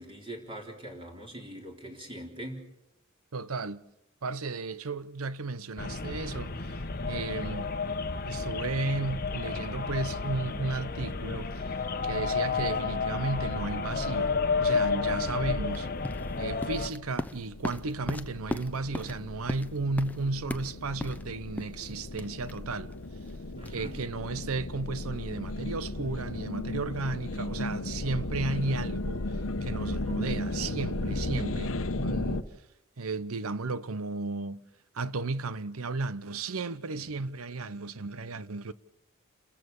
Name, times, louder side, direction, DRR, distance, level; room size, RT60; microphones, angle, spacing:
voice 1, 0.0-2.7 23.5-24.0 31.3-31.5 37.0-37.1, right 1 dB, 25° right, 3.9 m, -42 dB
voice 2, 3.3-3.8 4.2-7.7 8.2-11.7 12.0-15.9 16.4-22.9 23.7-32.4 33.0-34.6 34.9-38.7, right 3 dB, 85° right, 0.8 m, -34 dB
sound 1, 5.8-16.9, left 4 dB, 45° left, 1.1 m, -31 dB
sound 2, 15.7-24.5, left 1 dB, 5° left, 0.7 m, -39 dB
sound 3, 16.7-32.4, left 2 dB, 70° left, 1.0 m, -35 dB
29.0 x 14.5 x 7.0 m
head